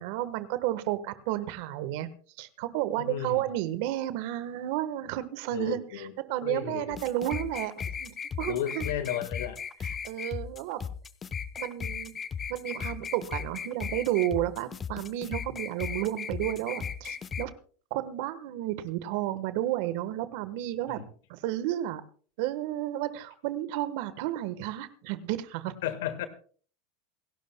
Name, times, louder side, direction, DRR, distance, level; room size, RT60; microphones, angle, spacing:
voice 1, 0.0-2.1 2.4-7.7 8.0-8.8 9.8-10.8 11.6-12.1 12.5-17.5 17.9-21.0 21.3-22.0 22.4-25.7, right 14 dB, 65° right, 12 dB, 1.2 m, -32 dB
voice 2, 3.0-3.4 5.5-6.1 6.4-7.0 8.5-9.6 21.0-21.1 25.8-26.3, left 10 dB, 80° left, 10 dB, 1.5 m, -33 dB
sound 1, 6.9-17.5, left 7 dB, 30° left, 0.9 m, -36 dB
27.5 x 11.5 x 2.2 m, 0.43 s
hypercardioid pair, 100°, 0 cm